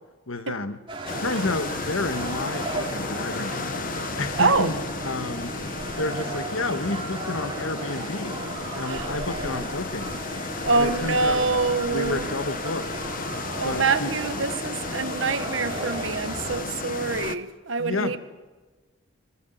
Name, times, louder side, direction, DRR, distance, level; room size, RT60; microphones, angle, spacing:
voice 1, 0.3-0.8 1.2-3.7 4.2-5.6 6.0-8.5 8.7-10.2 10.7-11.4 11.9-12.9 13.6-14.1 17.8-18.2, left 2 dB, 80° left, 1.5 m, -30 dB
sound 1, 0.9-16.6, right 3 dB, 25° right, 3.6 m, -35 dB
sound 2, 1.1-17.4, left 4 dB, 40° left, 0.8 m, -34 dB
voice 2, 4.4-4.7 8.9-9.1 10.6-12.3 13.5-18.2, right 4 dB, 70° right, 1.3 m, -25 dB
22.5 x 21.0 x 8.1 m
head